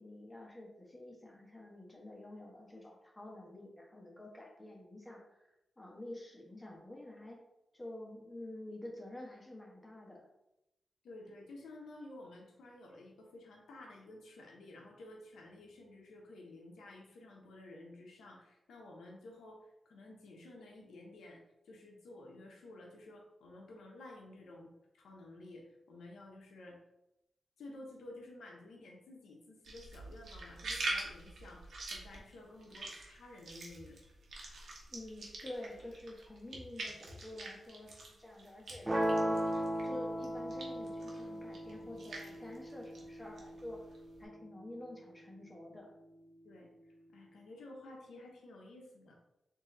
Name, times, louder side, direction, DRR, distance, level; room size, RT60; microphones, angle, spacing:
voice 1, 0.0-5.4 5.8-7.4 7.7-10.3 34.9-39.4 39.8-43.8 44.2-45.9, left 1 dB, 15° left, -2 dB, 1.2 m, -49 dB
voice 2, 11.0-21.4 21.7-26.8 27.6-34.0 46.4-46.7 47.1-49.2, left 2 dB, 90° left, 0 dB, 0.7 m, -53 dB
sound 1, 29.6-40.0 40.2-44.2, right 2 dB, 75° right, 1.0 m, -45 dB
sound 2, 38.9-44.9, equal, 25° right, 0.6 m, -37 dB
3.9 x 2.7 x 3.8 m, 0.90 s
cardioid pair, 65°, 0 cm